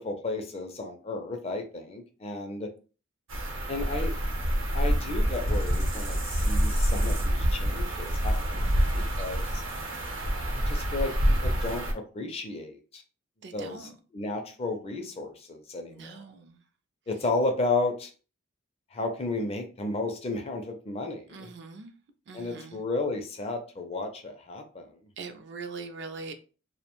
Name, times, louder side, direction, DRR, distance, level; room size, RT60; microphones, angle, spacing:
voice 1, 0.0-2.7 3.7-4.1 4.7-9.6 10.7-11.1 11.4-13.0 13.5-16.2 17.1-18.1 18.9-21.5 22.3-24.9, left 2 dB, 30° left, 0.4 m, -33 dB
sound 1, 3.3-11.9, equal, 80° right, 0.8 m, -27 dB
voice 2, 13.4-13.9 15.9-16.6 21.3-21.9 22.3-22.8 25.2-26.3, right 4 dB, 60° right, 0.4 m, -42 dB
2.4 x 2.1 x 2.9 m
head